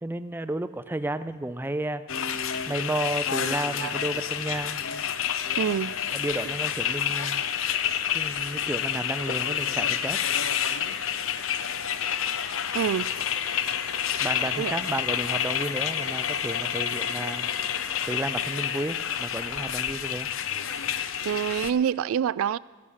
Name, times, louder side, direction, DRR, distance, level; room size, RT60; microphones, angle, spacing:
voice 1, 0.0-2.3 2.7-4.8 6.1-7.4 8.1-10.2 14.2-17.5 18.1-20.3, right 1 dB, 10° right, 0.4 m, -32 dB
sound 1, 2.1-21.7, left 9 dB, 75° left, 0.7 m, -29 dB
voice 2, 5.6-5.9 12.7-13.1 14.6-14.7 21.2-22.6, right 8 dB, 85° right, 0.3 m, -26 dB
13.5 x 11.5 x 6.4 m
head